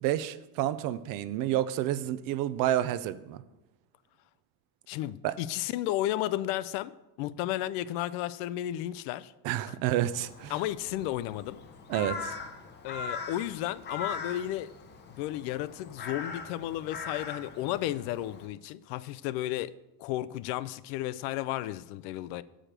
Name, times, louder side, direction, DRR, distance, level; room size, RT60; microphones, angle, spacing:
voice 1, 0.0-3.4 5.2-5.4 9.4-10.5 11.9-12.3, right 12 dB, 55° right, 0.5 m, -29 dB
voice 2, 4.9-9.3 9.7-9.8 10.5-11.6 12.8-14.7 15.2-19.7 20.0-22.4, left 14 dB, 75° left, 0.5 m, -33 dB
Crow, 10.0-18.5, left 5 dB, 25° left, 0.6 m, -41 dB
7.4 x 5.0 x 6.6 m
cardioid pair, 170°, 41 cm